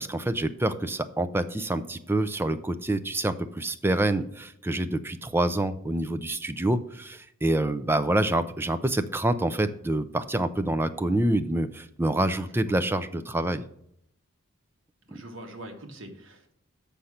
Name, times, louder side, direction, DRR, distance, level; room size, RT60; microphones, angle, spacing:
voice 1, 0.0-13.6, right 1 dB, 10° right, 11 dB, 0.4 m, -27 dB
voice 2, 12.4-12.7 15.1-16.5, right 1 dB, 60° right, 4 dB, 1.5 m, -44 dB
6.8 x 5.8 x 6.4 m, 0.71 s
head